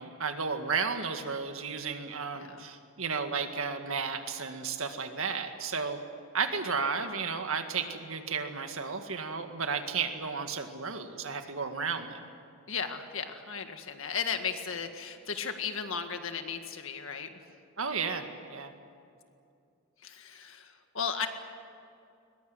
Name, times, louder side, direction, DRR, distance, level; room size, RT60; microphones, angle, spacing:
voice 1, 0.0-6.0 6.3-12.2 17.8-18.7, right 5 dB, 65° right, 6 dB, 2.0 m, -33 dB
voice 2, 2.3-2.7 12.7-17.3 20.0-21.3, left 6 dB, 60° left, 6 dB, 1.9 m, -35 dB
21.5 x 21.5 x 9.6 m, 2.5 s
head